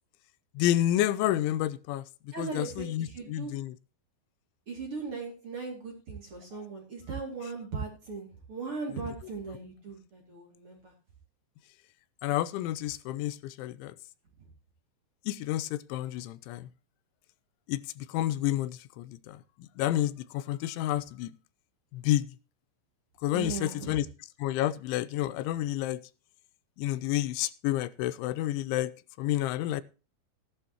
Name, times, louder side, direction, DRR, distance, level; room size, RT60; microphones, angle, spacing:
voice 1, 0.6-2.0 2.4-3.7 12.2-14.0 15.3-16.7 17.7-19.4 19.8-21.3 21.9-22.3 23.2-24.0 24.4-26.0 26.8-28.9 29.2-29.8, left 13 dB, 85° left, 3.0 m, -30 dB
voice 2, 2.3-3.5 4.7-10.9 14.4-14.5 23.3-24.0, right 4 dB, 35° right, 2.7 m, -38 dB
15.0 x 11.5 x 3.0 m
omnidirectional pair, 5.3 m